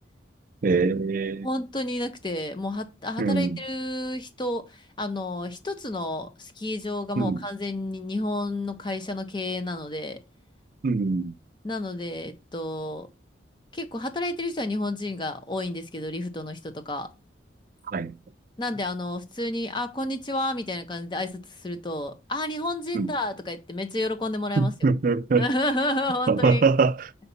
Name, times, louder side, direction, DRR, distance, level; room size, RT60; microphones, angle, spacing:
voice 1, 0.6-1.5 3.2-3.6 7.2-7.4 10.8-11.3 17.9-18.2 22.9-23.1 24.6-25.5 26.3-27.1, right 4 dB, 45° right, 0.4 m, -23 dB
voice 2, 1.4-10.2 11.6-13.1 13.7-17.1 18.6-24.7 25.4-26.6, left 1 dB, 25° left, 0.7 m, -30 dB
5.6 x 4.1 x 5.6 m
head